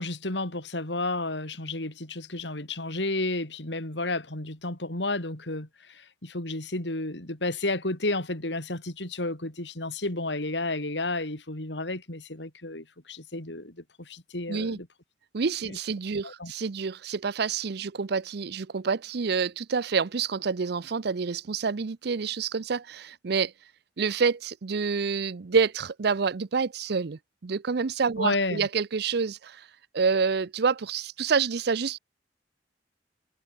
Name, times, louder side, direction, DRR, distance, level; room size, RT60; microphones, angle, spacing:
voice 1, 0.0-14.9 15.7-15.8 16.2-16.5 28.2-28.7, left 2 dB, 80° left, 4.2 m, -32 dB
voice 2, 14.5-14.8 15.3-23.5 24.0-29.7 29.9-32.0, right 5 dB, 65° right, 0.6 m, -28 dB
head